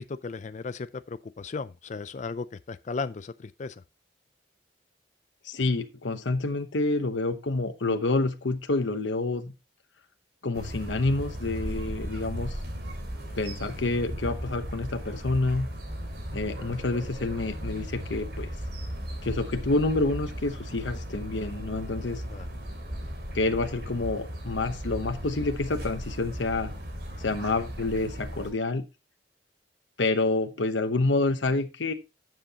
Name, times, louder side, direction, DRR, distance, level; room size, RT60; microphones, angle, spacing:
voice 1, 0.0-3.8 22.3-22.5, left 4 dB, 40° left, 0.4 m, -36 dB
voice 2, 5.4-9.5 10.4-12.6 13.4-15.7 16.3-18.5 19.2-22.2 23.3-26.7 27.2-28.8 30.0-31.9, left 2 dB, 90° left, 1.0 m, -28 dB
sound 1, 10.5-28.5, equal, 60° right, 3.2 m, -36 dB
12.0 x 7.6 x 2.9 m
head